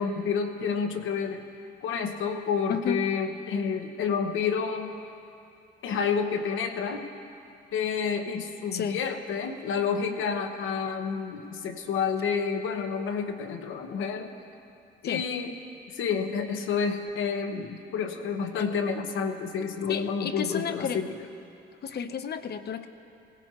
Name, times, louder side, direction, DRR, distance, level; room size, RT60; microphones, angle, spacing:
voice 1, 0.0-1.4 1.8-4.9 5.8-7.1 7.7-14.3 15.0-15.5 15.9-21.1, left 6 dB, 80° left, 5 dB, 1.1 m, -29 dB
voice 2, 2.7-3.0 8.7-9.0 15.0-15.3 18.6-18.7 19.9-21.0 21.8-22.9, left 7 dB, 55° left, 9 dB, 0.8 m, -31 dB
19.5 x 16.5 x 2.9 m, 2.6 s
cardioid pair, 90°, 20 cm